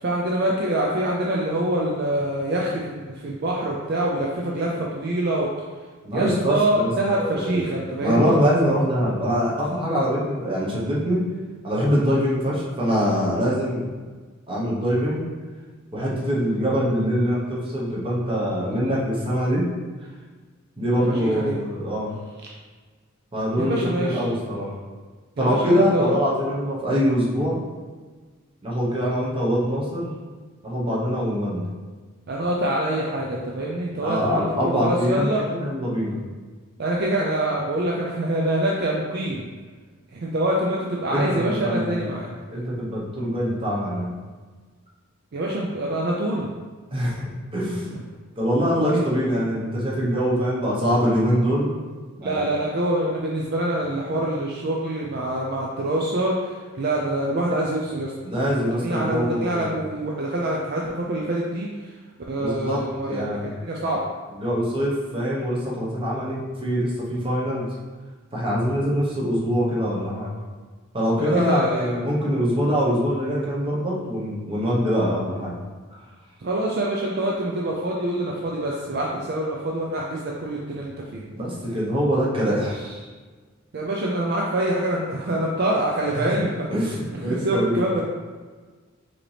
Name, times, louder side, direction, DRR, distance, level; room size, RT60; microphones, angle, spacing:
voice 1, 0.0-5.5 6.1-8.4 21.1-21.5 23.6-24.3 25.4-26.1 32.3-35.4 36.8-39.5 40.1-42.3 45.3-46.5 48.9-49.0 52.2-58.1 58.6-61.9 62.3-63.3 63.6-64.0 71.2-71.9 76.4-81.2 83.7-86.7 87.1-88.0, right 1 dB, 50° right, -2 dB, 0.5 m, -25 dB
voice 2, 6.0-7.7 8.0-11.2 11.6-13.9 14.5-15.3 15.9-19.7 20.8-22.2 23.3-24.8 25.4-27.6 28.6-30.1 30.6-31.7 34.0-36.2 41.1-44.1 46.9-47.2 47.5-48.0 48.4-51.8 52.2-52.4 58.2-59.8 62.4-62.8 63.1-63.5 64.3-67.7 68.3-70.3 70.9-75.5 81.4-83.1 86.2-86.3 86.7-87.8, equal, 25° right, -5 dB, 1.0 m, -24 dB
5.0 x 2.9 x 3.3 m, 1.4 s
head